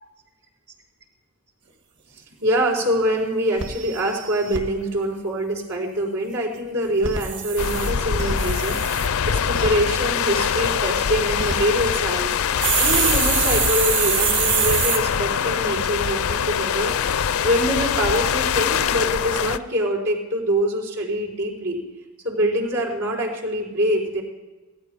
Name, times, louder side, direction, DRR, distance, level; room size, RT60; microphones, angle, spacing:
sound 1, 2.4-2.5 2.9-3.0 3.2-3.3 3.6-4.6 6.9-9.1 9.5-9.7 11.1-11.5 12.6-15.0, right 8 dB, 55° right, 2.0 m, -24 dB
voice 1, 2.4-16.9 17.4-21.8 22.2-24.2, equal, 90° right, -4 dB, 4.5 m, -24 dB
sound 2, 7.6-19.6, left 7 dB, 70° left, 0.5 m, -23 dB
16.5 x 13.0 x 5.4 m, 1.2 s
head